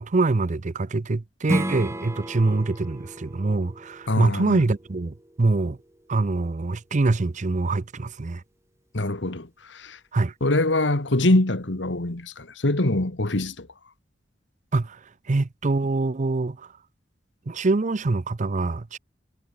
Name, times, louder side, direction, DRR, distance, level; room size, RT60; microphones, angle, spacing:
voice 1, 0.0-5.8 6.1-8.4 10.1-10.3 14.7-15.0 15.3-16.7 17.5-19.0, right 3 dB, 40° right, 0.6 m, -24 dB
Strum, 1.5-6.7, equal, 15° right, 3.2 m, -34 dB
voice 2, 4.1-4.6 8.9-10.0 10.4-13.7, left 2 dB, 70° left, 1.9 m, -24 dB
head